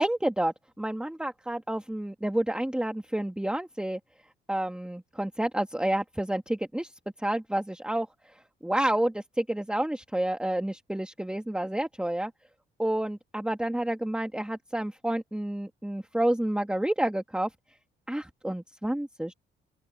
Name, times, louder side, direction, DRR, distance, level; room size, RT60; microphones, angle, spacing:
voice 1, 0.0-4.0 4.5-6.9 7.2-8.1 8.6-12.3 12.8-17.5 18.1-19.3, right 1 dB, 5° right, 1.7 m, -29 dB
open air
cardioid pair, 90°, 20 cm